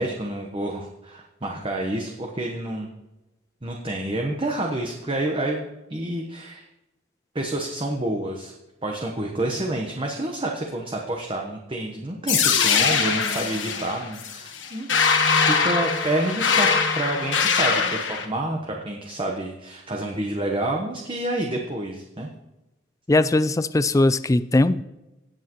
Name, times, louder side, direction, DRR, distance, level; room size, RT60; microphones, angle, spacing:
voice 1, 0.0-2.9 3.6-6.7 7.3-8.5 8.8-14.9 15.4-16.7 16.9-22.3, right 1 dB, 25° right, 1 dB, 1.0 m, -28 dB
sound 1, 12.3-18.3, left 5 dB, 70° left, 1.3 m, -22 dB
voice 2, 23.1-24.8, left 2 dB, 15° left, 14 dB, 0.3 m, -19 dB
17.5 x 7.5 x 3.0 m, 0.98 s
head